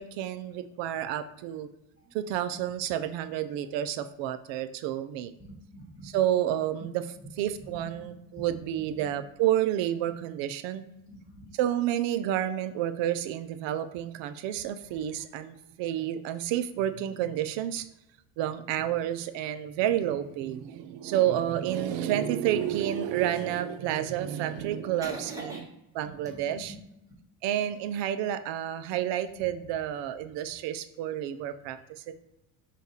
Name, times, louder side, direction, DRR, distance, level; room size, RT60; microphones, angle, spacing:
voice 1, 0.0-1.7 2.1-5.3 6.0-7.0 7.4-10.8 11.6-17.8 18.4-25.6 26.0-26.7 27.4-31.8 32.1-32.2, right 11 dB, 65° right, 11 dB, 0.5 m, -30 dB
voice 2, 5.4-6.2 6.8-6.9 7.4-8.4 8.8-9.1 11.0-11.5 24.6-24.7 25.0-25.6 26.0-26.8 29.4-29.5, right 1 dB, 5° right, -4 dB, 1.4 m, -45 dB
5.2 x 2.4 x 4.0 m, 0.86 s
supercardioid pair, 90°, 48 cm